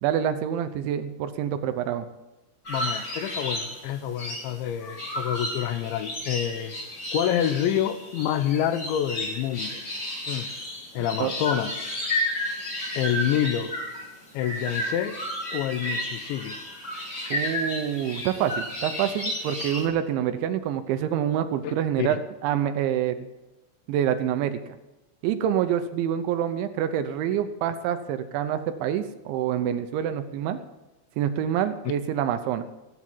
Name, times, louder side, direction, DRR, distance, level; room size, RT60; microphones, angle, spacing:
voice 1, 0.0-2.1 11.2-11.3 17.3-23.3 23.9-24.6 25.2-30.6 31.2-32.7, right 10 dB, 80° right, 9 dB, 3.1 m, -26 dB
sound 1, 2.6-19.9, left 1 dB, 25° left, 2.5 m, -32 dB
voice 2, 2.7-6.8 7.1-9.8 10.3-10.5 10.9-11.7 12.9-13.7 14.3-15.2 15.5-16.6 21.6-22.2, left 10 dB, 80° left, 11 dB, 3.0 m, -27 dB
17.0 x 9.6 x 7.4 m, 1.0 s
omnidirectional pair, 5.6 m